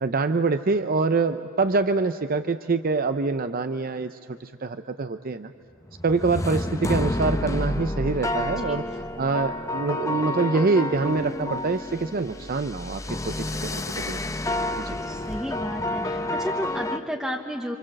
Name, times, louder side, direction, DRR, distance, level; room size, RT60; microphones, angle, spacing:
voice 1, 0.0-5.5 6.0-8.9 9.2-14.2 14.8-15.0, right 3 dB, 45° right, 10 dB, 0.6 m, -25 dB
sound 1, 5.9-17.0, left 1 dB, 15° left, 0.9 m, -29 dB
voice 2, 15.0-17.8, equal, ahead, 0 dB, 1.1 m, -32 dB
28.5 x 26.5 x 7.7 m, 2.5 s
head